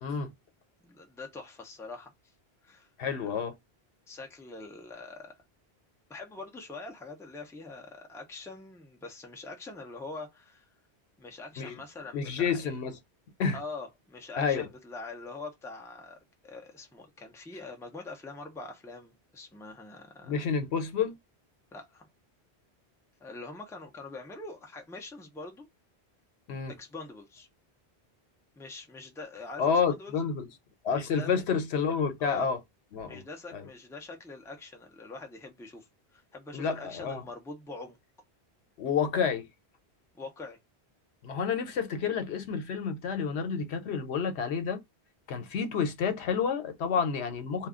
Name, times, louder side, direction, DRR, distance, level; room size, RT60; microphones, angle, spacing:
voice 1, 0.0-0.3 3.0-3.5 11.6-11.8 12.1-12.9 13.4-13.6 14.4-14.7 20.3-21.2 26.5-26.7 29.6-30.5 30.8-32.6 32.9-33.2 33.5-33.7 36.5-37.2 38.8-39.5 41.2-44.8 45.3-47.7, left 6 dB, 85° left, 1.0 m, -29 dB
voice 2, 0.8-2.1 2.6-2.9 4.1-5.4 6.1-10.7 11.2-12.8 13.5-20.4 21.7-22.1 23.2-25.7 26.8-27.5 28.6-30.2 30.9-31.4 32.2-32.5 33.1-38.0 40.1-40.6, left 3 dB, 5° left, 0.5 m, -44 dB
2.4 x 2.3 x 3.5 m
omnidirectional pair, 1.1 m